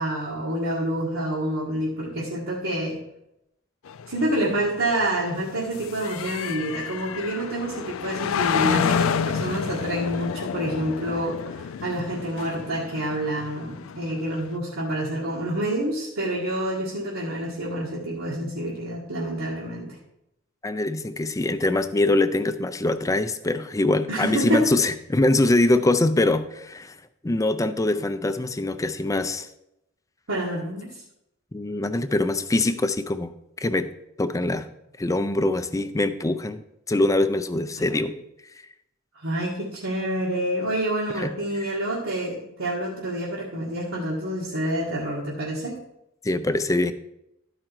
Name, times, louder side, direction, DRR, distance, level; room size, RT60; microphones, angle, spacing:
voice 1, 0.0-3.0 4.1-20.0 24.1-24.7 30.3-30.9 39.2-45.8, right 1 dB, 85° right, -6 dB, 1.7 m, -28 dB
sound 1, 3.9-14.6, left 7 dB, 80° left, 0.4 m, -30 dB
voice 2, 20.6-27.0 27.2-29.5 31.5-33.3 33.6-33.9 34.2-34.7 35.0-36.6 36.9-38.2 41.2-41.7 46.2-46.9, left 2 dB, 15° left, 11 dB, 0.4 m, -23 dB
12.5 x 4.9 x 4.5 m, 0.84 s
head